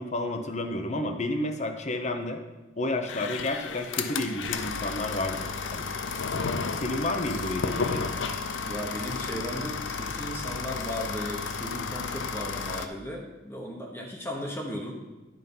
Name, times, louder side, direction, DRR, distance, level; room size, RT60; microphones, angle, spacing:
voice 1, 0.0-2.4 2.8-5.9 6.8-8.1, left 1 dB, 40° left, 6 dB, 0.8 m, -31 dB
sound 1, 3.1-12.9, left 5 dB, 90° left, 0.6 m, -32 dB
voice 2, 8.7-15.2, left 1 dB, 15° left, 0 dB, 1.1 m, -36 dB
10.0 x 5.4 x 5.5 m, 1.1 s
head